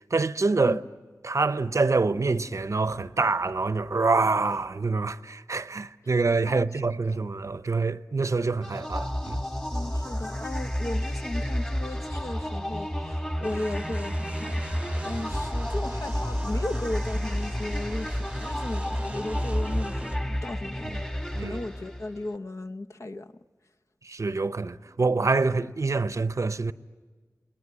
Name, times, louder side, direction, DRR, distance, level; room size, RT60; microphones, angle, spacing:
voice 1, 0.1-0.8 1.2-9.4 21.3-21.6 24.1-26.7, right 3 dB, 50° right, 0.7 m, -26 dB
voice 2, 6.5-7.2 9.7-21.0 21.4-23.3, left 2 dB, 50° left, 0.8 m, -36 dB
sound 1, 8.6-22.3, equal, 15° left, 2.3 m, -30 dB
sound 2, 13.4-20.2, right 1 dB, 15° right, 0.8 m, -43 dB
28.5 x 20.5 x 9.6 m
wide cardioid pair, 80°, 6 cm